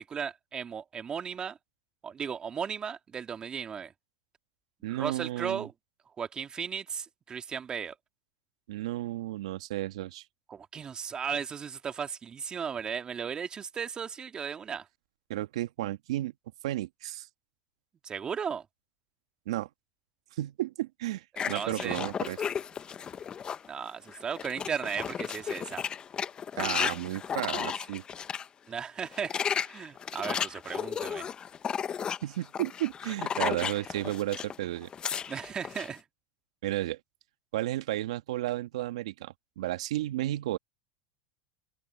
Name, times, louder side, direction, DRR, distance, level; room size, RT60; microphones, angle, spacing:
voice 1, 0.0-1.6 2.0-3.9 4.9-5.7 6.2-8.0 10.5-14.9 18.0-18.7 21.3-22.0 23.7-25.9 28.7-31.3 35.3-36.0, right 7 dB, 25° right, 2.2 m, -36 dB
voice 2, 4.8-5.7 8.7-10.2 15.3-16.3 16.6-17.3 19.5-19.7 20.4-22.4 26.6-28.0 32.2-34.9 36.6-37.0 37.5-40.6, right 15 dB, 80° right, 1.8 m, -33 dB
sound 1, 21.4-23.7 24.1-28.5 29.0-34.6 34.8-35.9, left 7 dB, 25° left, 1.0 m, -34 dB
hypercardioid pair, 110°, 3 cm